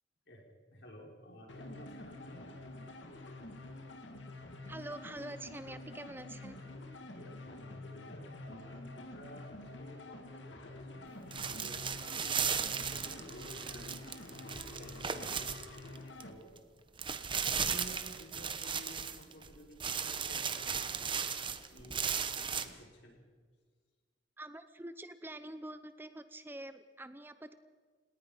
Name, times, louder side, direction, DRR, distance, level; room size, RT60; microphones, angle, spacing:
voice 1, 0.7-2.5 7.0-12.4 12.9-15.4 16.2-16.5 17.4-22.0 22.3-23.2, equal, 65° left, -1 dB, 6.0 m, -53 dB
sound 1, 1.5-16.4, left 2 dB, 85° left, 2.2 m, -48 dB
voice 2, 4.7-6.6 24.4-27.5, right 1 dB, 10° right, 11 dB, 0.7 m, -46 dB
sound 2, 11.3-16.2 16.6-16.7 17.0-19.5 19.8-22.7, right 7 dB, 25° right, 1.1 m, -36 dB
29.5 x 18.5 x 5.6 m, 1.5 s
head